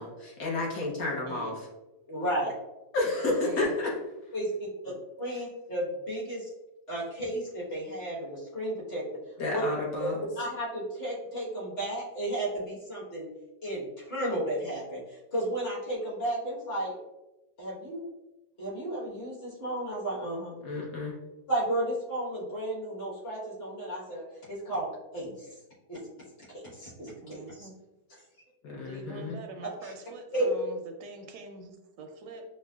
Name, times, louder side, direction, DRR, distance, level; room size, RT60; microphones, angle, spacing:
voice 1, 0.0-1.7 2.9-3.9 5.3-5.4 9.4-10.2 20.6-21.2 28.6-29.4, left 2 dB, 60° left, -3 dB, 1.2 m, -31 dB
voice 2, 2.1-2.5 4.3-4.5 4.8-4.9 5.2-6.5 6.9-9.0 9.5-9.6 10.0-10.1 10.4-13.3 13.6-16.9 17.6-18.0 18.6-20.5 21.5-24.2 24.5-25.5 25.9-26.0 26.5-27.7 29.6-29.9 30.3-30.5, right 1 dB, 40° left, -6 dB, 1.3 m, -33 dB
voice 3, 27.2-27.8 28.7-32.4, right 3 dB, 80° right, 4 dB, 1.2 m, -45 dB
6.1 x 2.1 x 2.3 m, 1.0 s
omnidirectional pair, 1.9 m